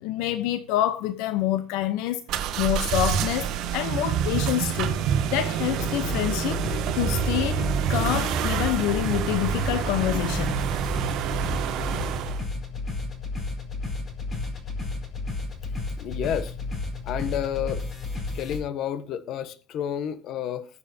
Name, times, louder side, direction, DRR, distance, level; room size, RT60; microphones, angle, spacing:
voice 1, 0.0-2.2 2.6-5.0 5.3-6.7 7.0-10.6, left 13 dB, 80° left, 0.9 m, -27 dB
sound 1, 2.3-12.4, right 8 dB, 60° right, 1.8 m, -27 dB
sound 2, 5.8-18.6, left 3 dB, 25° left, 4.5 m, -32 dB
voice 2, 16.0-16.5 17.0-17.8 18.3-20.7, left 9 dB, 55° left, 1.3 m, -30 dB
21.0 x 7.4 x 2.9 m
cardioid pair, 130°, 0 cm